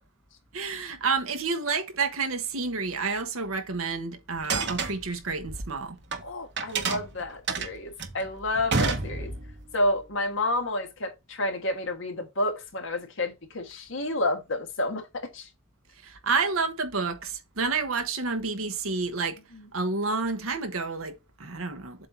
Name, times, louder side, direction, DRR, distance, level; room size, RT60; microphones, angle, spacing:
voice 1, 0.5-6.0 16.0-19.4 19.7-22.1, right 4 dB, 80° right, 1.2 m, -29 dB
sound 1, 4.3-6.2 6.6-9.6, right 4 dB, 55° right, 1.1 m, -29 dB
voice 2, 6.2-9.3 9.7-15.5 19.5-19.7, left 1 dB, 65° left, 1.7 m, -30 dB
7.6 x 2.8 x 5.3 m
head